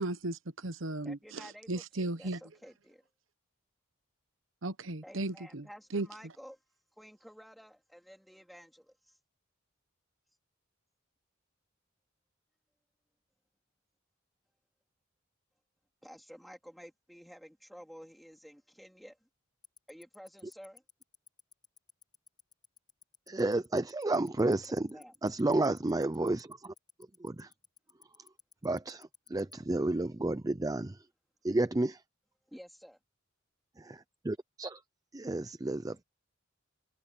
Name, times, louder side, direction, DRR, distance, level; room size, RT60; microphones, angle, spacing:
voice 1, 0.0-2.4 4.6-5.6 5.9-6.1, right 2 dB, 70° right, 1.1 m, -36 dB
voice 2, 1.0-3.1 5.0-6.6 7.0-9.2 16.0-19.3 19.9-20.8 24.7-25.1 32.5-33.0, equal, ahead, 3.9 m, -52 dB
Tick-tock, 19.6-29.5, left 7 dB, 20° left, 6.9 m, -55 dB
voice 3, 23.3-24.9 25.2-26.7 27.2-27.5 28.6-31.0 31.4-32.0 33.8-34.8 35.1-36.0, right 2 dB, 20° right, 0.5 m, -31 dB
head